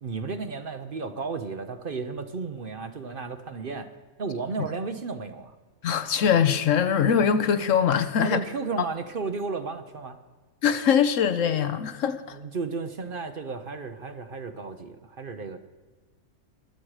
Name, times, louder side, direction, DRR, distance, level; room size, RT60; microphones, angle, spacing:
voice 1, 0.0-3.9 4.2-5.5 8.2-10.2 12.3-15.6, right 4 dB, 45° right, 0.9 m, -33 dB
voice 2, 5.8-8.4 10.6-12.4, left 7 dB, 70° left, 1.2 m, -22 dB
23.0 x 7.6 x 4.8 m
omnidirectional pair, 1.4 m